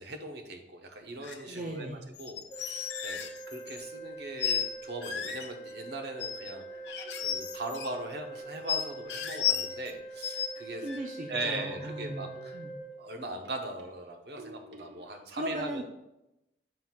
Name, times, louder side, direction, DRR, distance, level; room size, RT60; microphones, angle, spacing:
voice 1, 0.0-1.9 2.2-10.8 11.3-12.6 13.0-15.8, right 2 dB, 65° right, 4 dB, 0.9 m, -40 dB
sound 1, 1.2-1.4 2.1-3.9 4.4-4.7 5.0-5.5 6.2-6.5 6.9-7.9 8.7-9.9 10.2-10.5 10.9-11.0, left 9 dB, 75° left, 0.7 m, -33 dB
voice 2, 1.5-2.0 10.8-12.7 15.1-15.8, right 1 dB, 45° right, 1 dB, 0.5 m, -38 dB
Organ, 2.5-13.5, right 3 dB, 15° left, 0.7 m, -44 dB
sound 2, 6.5-9.0 10.6-15.1, right 2 dB, 90° right, 0.7 m, -54 dB
7.6 x 2.6 x 5.7 m, 0.89 s
head